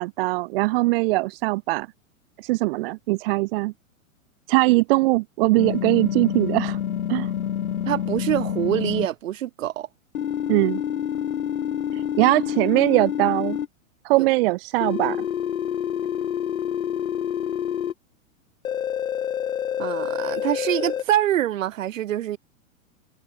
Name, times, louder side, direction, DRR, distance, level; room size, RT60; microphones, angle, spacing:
voice 1, 0.0-1.9 2.4-3.7 4.5-6.8 7.1-7.3 10.5-10.8 11.9-13.6 14.0-15.2, right 21 dB, 45° right, 0.6 m, -21 dB
sound 1, 5.6-9.1 10.1-13.7 14.8-17.9 18.6-21.0, left 9 dB, 85° left, 1.7 m, -27 dB
voice 2, 7.9-9.9 14.2-14.3 19.8-22.4, right 12 dB, 70° right, 4.5 m, -25 dB
hypercardioid pair, 125°, 41 cm